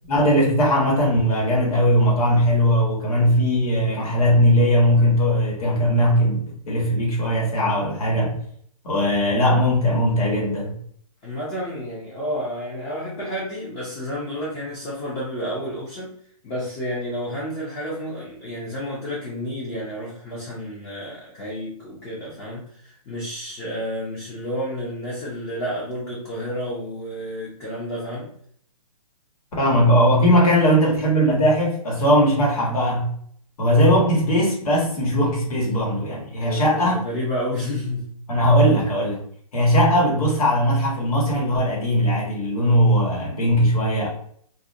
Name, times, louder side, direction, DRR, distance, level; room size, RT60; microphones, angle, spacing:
voice 1, 0.1-8.4 8.8-10.7 29.6-33.1 33.6-37.0 38.3-39.2 39.5-44.1, equal, 70° left, -2 dB, 1.2 m, -19 dB
voice 2, 11.2-16.1 16.4-28.3 36.4-38.2, equal, 15° left, -6 dB, 0.4 m, -30 dB
2.3 x 2.1 x 2.6 m, 0.63 s
hypercardioid pair, 150°, 19 cm